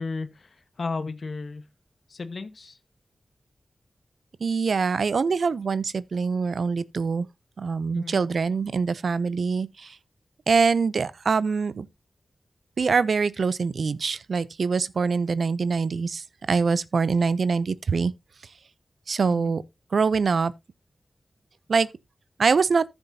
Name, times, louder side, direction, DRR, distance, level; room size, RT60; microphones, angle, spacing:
voice 1, 0.0-1.7 2.1-2.8 7.9-8.2 19.3-19.5, left 4 dB, 65° left, 1.1 m, -34 dB
voice 2, 4.4-7.3 7.6-10.0 10.5-11.9 12.8-18.1 19.1-19.6 19.9-20.5 21.7-21.9 22.4-22.8, right 5 dB, 80° right, 0.4 m, -24 dB
14.0 x 7.0 x 2.7 m
wide cardioid pair, 75°, 0 cm